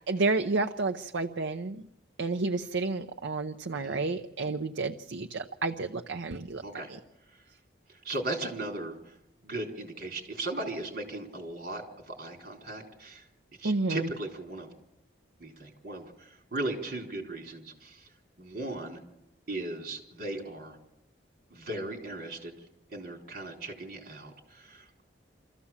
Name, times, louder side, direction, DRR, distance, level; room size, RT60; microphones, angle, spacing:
voice 1, 0.1-1.8 2.2-6.6 13.6-14.0, right 3 dB, 75° right, 6 dB, 0.7 m, -30 dB
voice 2, 3.7-4.0 6.6-6.9 8.0-9.0 9.4-13.2 13.6-14.7 15.4-18.1 18.4-19.0 19.5-20.8 21.5-22.5 22.9-24.9, right 2 dB, 50° right, 1 dB, 4.0 m, -37 dB
25.5 x 14.5 x 7.3 m, 0.89 s
head